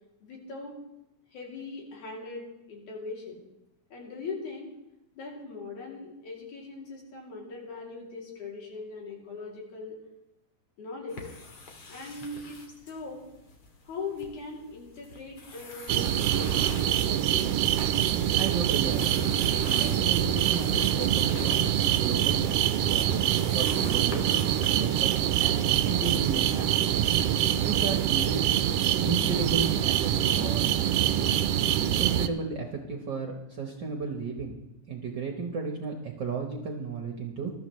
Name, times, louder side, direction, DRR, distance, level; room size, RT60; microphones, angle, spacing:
voice 1, 0.2-0.8 1.3-3.4 3.9-4.7 5.2-10.0 10.8-11.3 11.9-13.2 13.8-17.5, left 3 dB, 85° left, -2 dB, 4.3 m, -40 dB
sound 1, 11.1-24.8, left 2 dB, 50° left, 2.2 m, -45 dB
sound 2, 15.9-32.3, right 11 dB, 80° right, 1.4 m, -25 dB
voice 2, 18.3-19.3 19.7-21.6 22.0-24.4 24.6-27.1 27.6-28.4 29.0-30.7 32.0-34.5 34.9-37.5, right 4 dB, 55° right, 3 dB, 1.2 m, -34 dB
20.5 x 13.0 x 3.1 m, 0.89 s
omnidirectional pair, 3.3 m